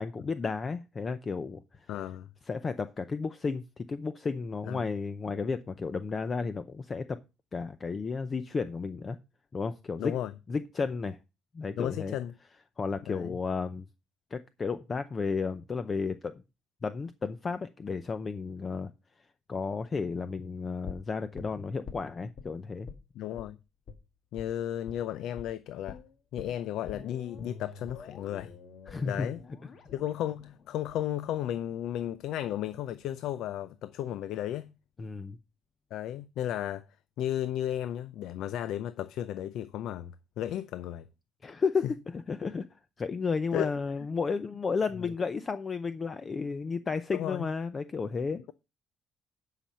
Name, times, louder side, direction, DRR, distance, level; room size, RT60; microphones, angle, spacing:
voice 1, 0.0-1.6 2.5-7.2 7.5-9.2 9.5-10.1 10.5-11.2 11.5-12.2 12.8-13.9 14.3-16.4 16.8-18.9 19.5-22.9 28.9-29.3 35.0-35.4 41.4-41.9 42.1-42.7 43.0-48.4, left 4 dB, 30° left, 0.6 m, -33 dB
voice 2, 1.9-2.3 4.7-4.8 10.0-10.3 11.8-12.3 13.1-13.4 23.2-23.6 24.3-26.0 26.3-28.5 29.0-29.4 29.9-34.7 35.9-36.8 37.2-41.1 43.5-43.7 45.0-45.1 47.1-47.5, left 11 dB, 75° left, 0.5 m, -34 dB
sound 1, 20.8-22.5 22.9-23.1 23.4-23.5 23.9-24.0 24.4-24.5 24.9-25.1 25.4-25.5 25.9-31.9 32.2-32.3, left 5 dB, 50° left, 1.6 m, -47 dB
10.0 x 5.8 x 5.5 m
cardioid pair, 125°, 0 cm